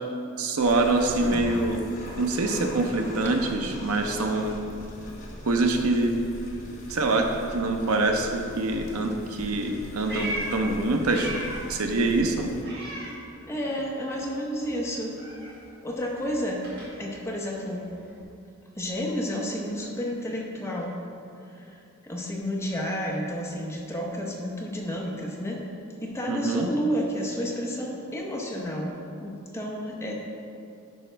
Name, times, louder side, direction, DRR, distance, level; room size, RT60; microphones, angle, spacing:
voice 1, 0.4-1.8 2.2-4.6 5.4-6.1 6.9-11.3 11.7-12.5 26.3-26.7, right 2 dB, 80° right, 4 dB, 0.7 m, -25 dB
sound 1, 0.6-12.6, left 1 dB, 35° left, 1.1 m, -41 dB
Meow, 9.6-11.8 12.1-13.8 14.0-18.2, right 1 dB, 45° right, 1.9 m, -39 dB
voice 2, 13.5-15.2 15.8-16.7 17.0-17.9 18.7-21.0 21.5-25.7 26.0-30.1, equal, 10° left, -1 dB, 0.8 m, -31 dB
11.0 x 5.1 x 3.3 m, 2.6 s
head